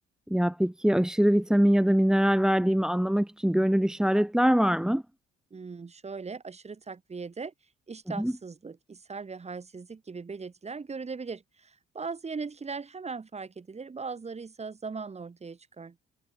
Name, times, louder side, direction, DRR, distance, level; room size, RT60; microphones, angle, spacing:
voice 1, 0.3-5.0 8.2-8.3, equal, 5° right, 1.3 m, -23 dB
voice 2, 5.5-7.5 7.9-16.0, right 4 dB, 35° right, 6.9 m, -39 dB
cardioid pair, 90°, 20 cm